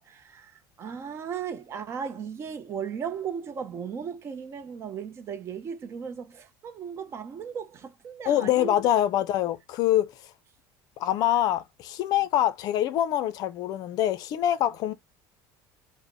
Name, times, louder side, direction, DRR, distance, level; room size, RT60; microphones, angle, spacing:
voice 1, 0.0-8.8 9.1-9.2, right 7 dB, 30° right, 0.6 m, -36 dB
voice 2, 8.3-10.1 11.0-14.9, left 12 dB, 50° left, 0.5 m, -25 dB
5.1 x 2.1 x 3.0 m
cardioid pair, 160°, 9 cm